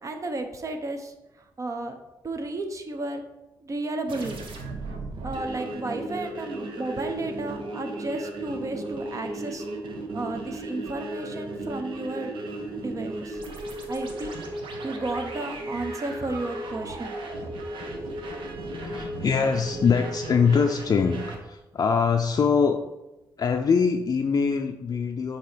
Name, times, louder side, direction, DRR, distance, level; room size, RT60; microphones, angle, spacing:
voice 1, 0.0-1.1 1.6-1.9 2.2-3.2 3.6-4.4 5.2-9.7 10.1-12.3 12.8-13.4 13.9-14.5 14.8-17.1, right 2 dB, 40° right, 6 dB, 0.9 m, -33 dB
sound 1, 4.1-21.4, right 1 dB, 75° right, 1.1 m, -35 dB
voice 2, 18.6-22.8 23.4-25.4, left 5 dB, 45° left, 3 dB, 0.5 m, -23 dB
7.5 x 3.0 x 5.1 m, 0.98 s
cardioid pair, 90°, 9 cm